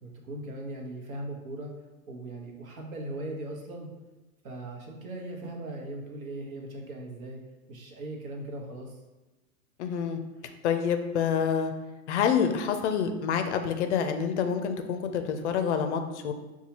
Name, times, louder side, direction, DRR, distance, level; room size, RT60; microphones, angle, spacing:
voice 1, 0.0-1.7 2.1-3.9 4.4-7.4 7.7-9.0, right 1 dB, 65° right, 1 dB, 1.1 m, -39 dB
voice 2, 9.8-10.2 10.6-11.7 12.1-16.3, left 7 dB, 50° left, 7 dB, 0.5 m, -27 dB
5.4 x 2.3 x 2.9 m, 1.1 s
hypercardioid pair, 110°, 45 cm